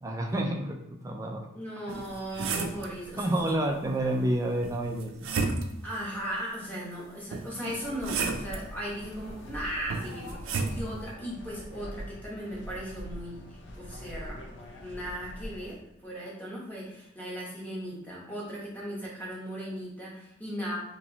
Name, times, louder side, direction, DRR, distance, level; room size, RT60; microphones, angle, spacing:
voice 1, 0.0-1.5 2.3-2.5 3.2-5.3, right 1 dB, 15° right, 2 dB, 0.3 m, -29 dB
voice 2, 1.5-3.5 5.8-14.4 14.8-15.8 16.0-20.8, equal, 10° left, -6 dB, 1.0 m, -37 dB
sound 1, 1.9-2.9 4.6-5.9 7.3-8.6 9.9-10.8, right 4 dB, 90° right, 0.5 m, -32 dB
sound 2, 7.6-15.7, equal, 65° left, 0.6 m, -43 dB
3.0 x 3.0 x 3.8 m, 0.84 s
head